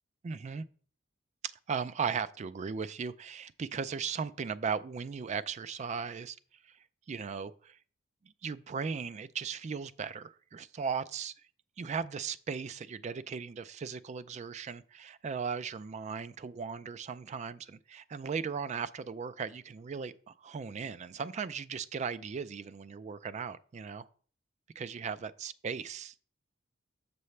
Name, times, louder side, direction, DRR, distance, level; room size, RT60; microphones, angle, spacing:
voice 1, 0.2-0.7 1.4-6.4 6.6-6.8 7.1-7.8 8.4-11.3 11.8-24.1 24.8-26.3, right 6 dB, 35° right, 0.3 m, -37 dB
6.8 x 6.5 x 3.2 m
head